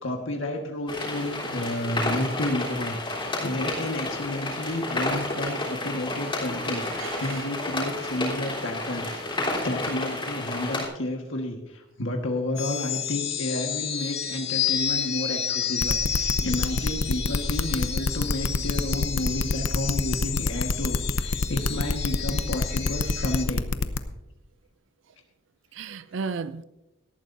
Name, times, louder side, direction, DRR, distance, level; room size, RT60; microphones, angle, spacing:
voice 1, 0.0-23.7, left 1 dB, 70° left, 1.5 m, -31 dB
sound 1, 0.9-10.8, left 2 dB, 25° left, 3.6 m, -31 dB
voice 2, 6.7-7.5 25.7-26.6, right 5 dB, 65° right, 0.4 m, -35 dB
sound 2, 12.6-23.4, left 8 dB, 55° left, 1.6 m, -31 dB
sound 3, 15.8-24.0, left 3 dB, 85° left, 0.8 m, -25 dB
18.0 x 13.5 x 2.6 m
head